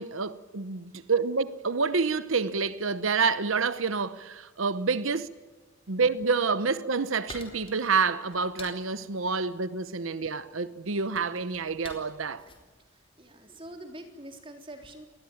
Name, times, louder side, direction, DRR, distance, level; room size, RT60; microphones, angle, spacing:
voice 1, 0.0-5.4 5.9-12.5, right 4 dB, 75° right, 1.0 m, -28 dB
sound 1, 6.6-13.8, left 3 dB, 25° left, 4.2 m, -50 dB
voice 2, 12.8-15.1, right 1 dB, 25° right, 3.6 m, -46 dB
28.0 x 20.5 x 8.8 m
head